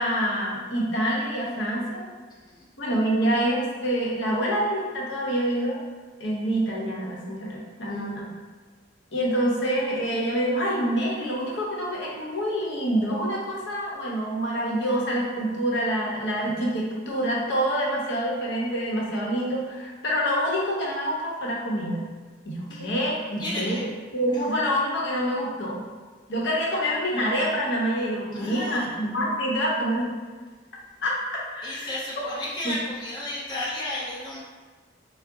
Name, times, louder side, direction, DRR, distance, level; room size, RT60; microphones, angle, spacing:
voice 1, 0.0-2.0 2.8-5.8 6.2-8.3 9.1-22.0 22.4-23.8 24.1-25.8 26.3-30.1 31.0-31.1 31.5-31.9 32.6-32.7, equal, 65° left, -4 dB, 0.8 m, -26 dB
voice 2, 2.3-2.7 7.9-8.0 22.7-22.9 23.4-23.8 24.3-24.4 28.3-28.9 31.6-34.4, left 1 dB, 25° left, -7 dB, 0.6 m, -33 dB
3.8 x 2.0 x 3.5 m, 1.4 s
head